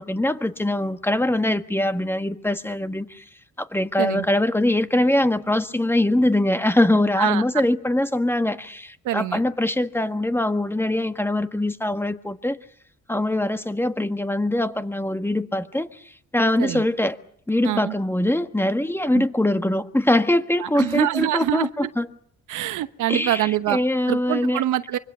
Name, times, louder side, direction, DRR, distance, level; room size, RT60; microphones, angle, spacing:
voice 1, 0.0-3.2 3.6-12.6 13.1-16.0 16.3-17.2 17.5-22.1 23.1-24.6, left 1 dB, 10° left, 1.5 m, -22 dB
voice 2, 9.0-9.4 16.6-16.8 17.6-17.9 19.1-19.3 20.6-21.9 22.5-23.8 24.1-25.0, right 14 dB, 85° right, 1.1 m, -25 dB
25.0 x 24.0 x 6.9 m
cardioid pair, 90°, 30 cm